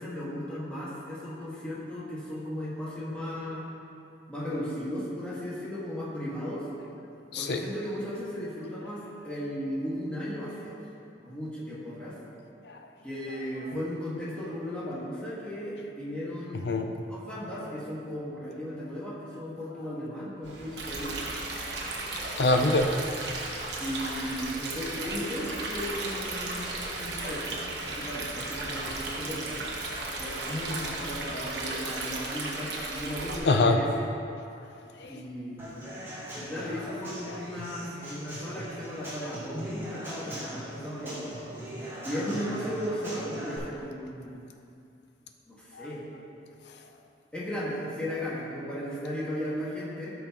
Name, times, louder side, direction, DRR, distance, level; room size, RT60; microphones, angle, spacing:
voice 1, 0.0-3.7 4.3-6.7 7.4-10.8 11.1-12.1 13.0-16.6 17.1-21.3 23.8-29.6 30.2-34.0 35.1-35.7 36.4-41.3 42.0-44.4 45.5-46.0 47.3-50.1, equal, 5° left, -8 dB, 1.7 m, -36 dB
Ocean / Boat Water vehicle, 20.4-31.7, right 1 dB, 90° right, 1.5 m, -45 dB
Stream, 20.8-33.4, right 2 dB, 70° right, 1.2 m, -35 dB
voice 2, 21.6-23.5 31.3-31.5 33.4-33.8 34.9-35.2 37.2-37.4 38.4-38.5 45.7-45.9 46.6-46.8, left 2 dB, 70° left, 5 dB, 0.6 m, -27 dB
Human voice / Acoustic guitar / Drum, 35.6-43.6, right 1 dB, 15° right, 1.9 m, -40 dB
13.0 x 5.9 x 3.0 m, 2.6 s
head